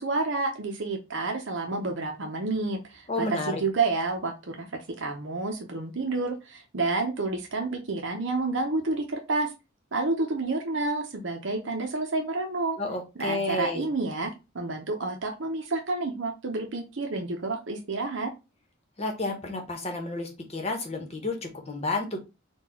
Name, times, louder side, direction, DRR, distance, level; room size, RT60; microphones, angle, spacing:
voice 1, 0.0-4.7 5.0-9.5 9.9-12.8 13.2-18.3, right 3 dB, 65° right, 3 dB, 0.7 m, -29 dB
voice 2, 3.1-3.6 12.8-13.8 19.0-22.2, left 2 dB, 30° left, 3 dB, 1.0 m, -31 dB
4.4 x 2.3 x 4.2 m, 0.26 s
head